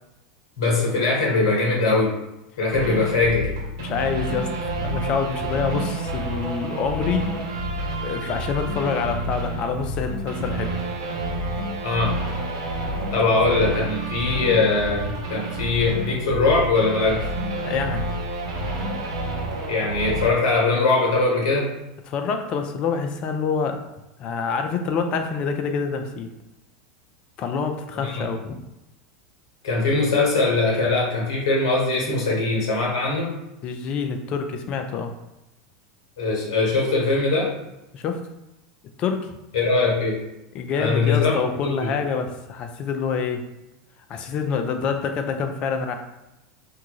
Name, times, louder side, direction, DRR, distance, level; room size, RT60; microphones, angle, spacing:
voice 1, 0.6-2.1 2.6-3.5 11.8-12.2 13.1-17.2 19.7-21.7 28.0-28.2 29.6-33.3 36.2-37.5 39.5-40.2 40.8-41.3 41.8-42.0, left 3 dB, 70° left, -2 dB, 1.1 m, -21 dB
sound 1, 2.7-20.3, right 1 dB, 75° right, 0.7 m, -29 dB
voice 2, 3.8-4.5 4.8-7.3 8.0-10.8 17.6-18.1 22.1-23.8 24.2-26.3 27.4-28.6 33.6-35.1 37.9-38.2 39.0-39.3 40.5-43.5 44.1-45.9, left 5 dB, 45° left, 6 dB, 0.5 m, -26 dB
3.5 x 2.4 x 2.9 m, 0.92 s
hypercardioid pair, 90°, 3 cm